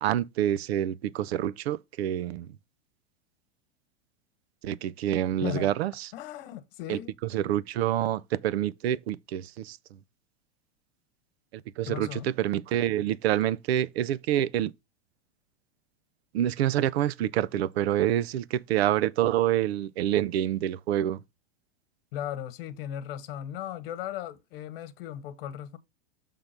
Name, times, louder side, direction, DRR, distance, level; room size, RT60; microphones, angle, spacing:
voice 1, 0.0-2.5 4.6-6.1 6.9-7.0 7.3-9.8 11.8-14.7 16.3-21.2, right 12 dB, 90° right, 0.7 m, -27 dB
voice 2, 5.4-5.7 6.1-7.1 11.8-12.3 22.1-25.8, left 11 dB, 65° left, 1.3 m, -36 dB
6.8 x 3.7 x 5.9 m
supercardioid pair, 150°, 30 cm